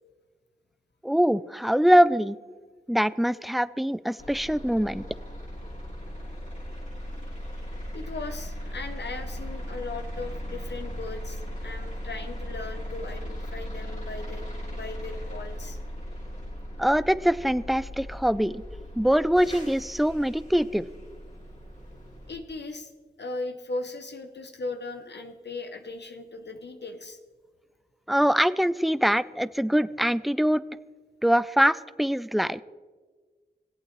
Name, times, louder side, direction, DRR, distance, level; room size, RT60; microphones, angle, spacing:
voice 1, 1.0-2.4 2.9-5.1 16.8-18.6 19.0-20.9 28.1-30.6 31.2-32.6, equal, ahead, 16 dB, 0.3 m, -23 dB
sound 1, 4.2-22.3, equal, 45° left, 2.4 m, -38 dB
voice 2, 7.9-15.8 22.3-22.9 23.2-27.2, left 3 dB, 85° left, 6 dB, 0.7 m, -38 dB
17.5 x 8.4 x 3.1 m, 1.4 s
cardioid pair, 40°, 17 cm